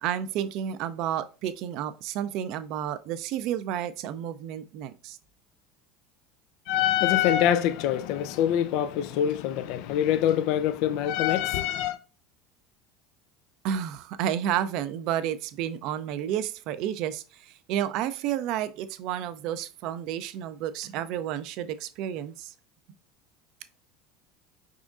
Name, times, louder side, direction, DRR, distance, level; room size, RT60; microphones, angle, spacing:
voice 1, 0.0-5.2 13.6-22.5, right 10 dB, 60° right, 0.4 m, -31 dB
voice 2, 6.7-12.0, left 11 dB, 60° left, 0.4 m, -24 dB
5.0 x 3.7 x 2.4 m
hypercardioid pair, 75°, 0 cm